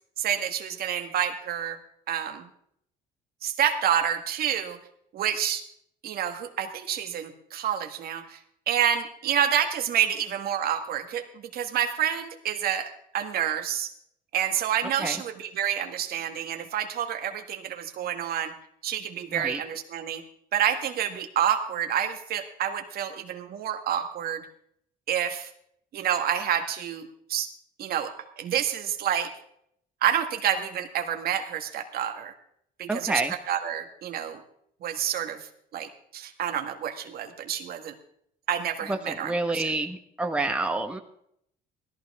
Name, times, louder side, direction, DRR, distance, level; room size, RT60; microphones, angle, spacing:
voice 1, 0.2-1.8 2.1-2.5 3.4-4.8 5.1-5.6 6.0-8.4 8.7-11.2 11.5-13.9 14.3-18.5 18.8-20.2 20.5-24.4 25.1-25.5 25.9-27.5 27.8-28.1 28.4-29.3 30.0-32.3 32.8-33.1 33.5-34.4 34.8-35.4 35.7-37.9 38.5-39.6, right 9 dB, 65° right, 6 dB, 1.6 m, -28 dB
voice 2, 32.9-33.3 38.9-41.0, right 2 dB, 5° right, 4 dB, 1.3 m, -28 dB
17.0 x 14.0 x 3.6 m, 0.70 s
cardioid pair, 110°, 17 cm